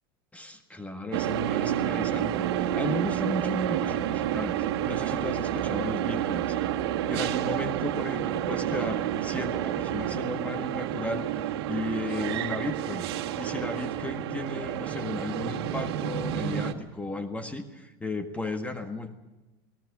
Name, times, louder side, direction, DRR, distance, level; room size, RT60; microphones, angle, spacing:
voice 1, 0.3-13.0 13.4-19.1, left 2 dB, 10° left, 6 dB, 1.7 m, -35 dB
sound 1, 1.1-16.7, right 11 dB, 80° right, 1.8 m, -29 dB
21.0 x 18.5 x 8.4 m, 1.1 s
supercardioid pair, 110°, 13 cm